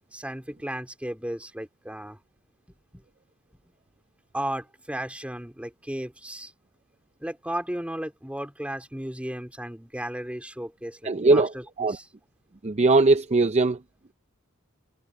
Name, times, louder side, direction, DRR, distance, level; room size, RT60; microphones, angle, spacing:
voice 1, 0.1-2.2 2.9-3.0 3.6-3.7 4.3-6.5 7.2-12.1, right 1 dB, 5° right, 3.1 m, -35 dB
voice 2, 11.0-11.5 11.8-12.0 12.6-13.8, right 3 dB, 30° right, 0.6 m, -20 dB
head